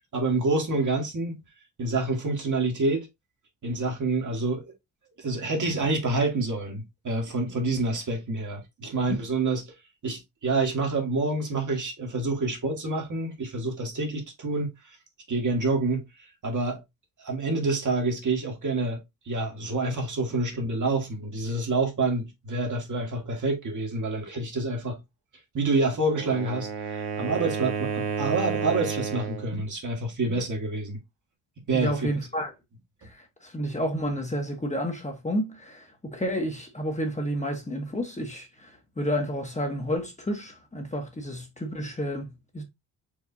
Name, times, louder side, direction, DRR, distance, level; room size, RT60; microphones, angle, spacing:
voice 1, 0.1-1.4 1.8-3.1 3.6-4.7 5.2-9.7 10.0-14.7 15.3-16.0 16.4-16.8 17.2-25.0 25.5-31.0 31.7-32.1, right 3 dB, 45° right, 1.7 m, -27 dB
Wind instrument woodwind instrument, 26.0-29.5, right 6 dB, 85° right, 1.3 m, -31 dB
voice 2, 31.7-32.5 33.0-42.6, equal, 15° left, 1.2 m, -30 dB
4.9 x 3.2 x 2.7 m
cardioid pair, 80°, 41 cm